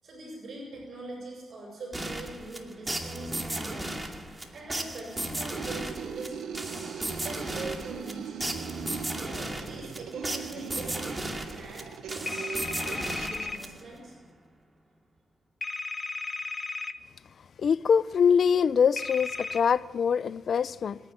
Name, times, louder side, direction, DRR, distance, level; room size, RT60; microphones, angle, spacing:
voice 1, 0.0-4.1 4.5-6.6 7.2-8.4 9.1-12.3 12.6-14.2, right 2 dB, 55° right, 7.4 m, -43 dB
sound 1, 1.9-14.1, right 1 dB, 15° right, 2.4 m, -36 dB
sound 2, 5.4-13.6, right 9 dB, 85° right, 0.8 m, -40 dB
sound 3, 12.3-13.6 15.6-16.9 19.0-19.6, left 4 dB, 25° left, 1.1 m, -34 dB
voice 2, 17.6-21.0, left 7 dB, 55° left, 0.5 m, -24 dB
29.0 x 10.0 x 9.7 m
cardioid pair, 105°, 0 cm